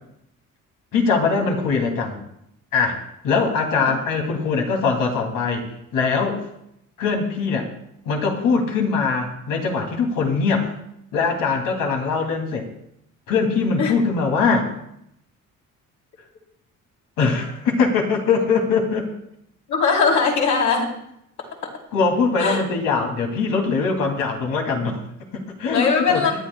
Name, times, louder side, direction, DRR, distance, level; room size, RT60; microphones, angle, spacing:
voice 1, 0.9-2.2 2.7-3.0 3.2-5.7 5.9-6.4 7.0-7.7 8.1-10.7 11.1-12.7 13.3-14.7 17.2-19.1 21.9-25.0 25.3-26.2, left 4 dB, 85° left, 2 dB, 2.6 m, -22 dB
voice 2, 19.7-20.9 22.4-22.6 25.7-26.3, left 5 dB, 60° left, -1 dB, 3.5 m, -20 dB
24.0 x 11.0 x 2.3 m, 0.75 s
cardioid pair, 110°, 32 cm